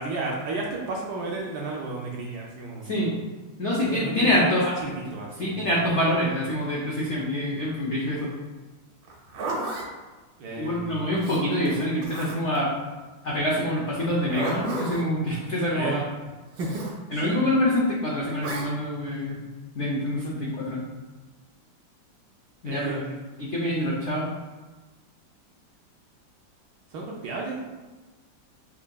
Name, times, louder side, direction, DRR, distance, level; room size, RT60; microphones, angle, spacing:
voice 1, 0.0-2.9 3.8-4.5 4.8-5.7 10.4-11.1 15.7-15.9 16.6-16.7 17.1-17.4 22.6-23.2 23.8-23.9 26.9-27.6, right 3 dB, 70° right, -2 dB, 1.0 m, -33 dB
voice 2, 2.8-3.2 3.6-4.7 5.4-8.3 10.6-12.7 13.2-16.0 17.1-19.4 19.7-20.8 22.6-23.0 23.4-24.3, left 1 dB, 80° left, -5 dB, 0.6 m, -25 dB
Zipper (clothing), 9.0-9.9 11.2-12.6 14.0-15.1 16.5-16.9 18.4-18.7, right 2 dB, 90° right, 1.6 m, -33 dB
5.5 x 2.6 x 2.2 m, 1.2 s
omnidirectional pair, 2.1 m